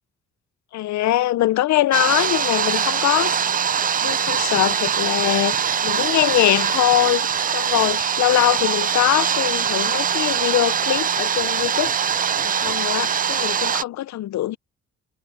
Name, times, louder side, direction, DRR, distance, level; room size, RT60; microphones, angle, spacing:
voice 1, 0.7-3.4 4.0-5.5 5.8-7.3 7.5-11.9 12.4-14.6, left 14 dB, 65° left, 0.6 m, -22 dB
Hair Dryer - Different speeds, 1.9-13.8, right 7 dB, 30° right, 0.4 m, -22 dB
cardioid pair, 90°, 30 cm